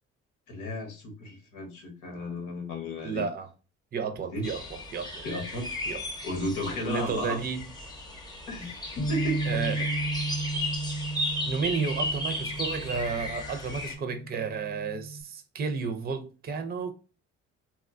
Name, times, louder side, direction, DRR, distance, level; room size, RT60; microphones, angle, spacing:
voice 1, 0.5-3.3 4.3-4.5 5.2-5.7 6.2-7.4 8.5-9.9, left 1 dB, 90° left, 1.1 m, -34 dB
voice 2, 3.0-3.5 3.9-4.6 4.9-5.3 5.9-6.0 6.8-7.6 8.6-8.7 9.5-9.9 11.4-16.9, right 5 dB, 30° right, 0.5 m, -32 dB
sound 1, 4.4-14.0, left 1 dB, 15° left, 0.8 m, -35 dB
Bass guitar, 9.0-15.2, right 2 dB, 50° left, 0.8 m, -34 dB
2.9 x 2.2 x 2.4 m
cardioid pair, 90°, 30 cm